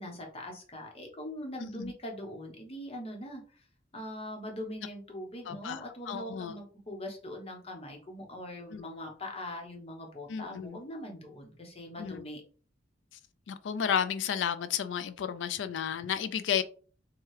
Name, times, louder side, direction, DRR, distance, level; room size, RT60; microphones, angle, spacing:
voice 1, 0.0-3.6 3.9-12.4, left 1 dB, 30° left, 0.9 m, -42 dB
voice 2, 1.6-1.9 5.5-6.6 8.7-8.8 10.3-10.8 12.0-12.2 13.5-16.6, left 8 dB, 70° left, 0.3 m, -32 dB
4.6 x 2.3 x 3.1 m
head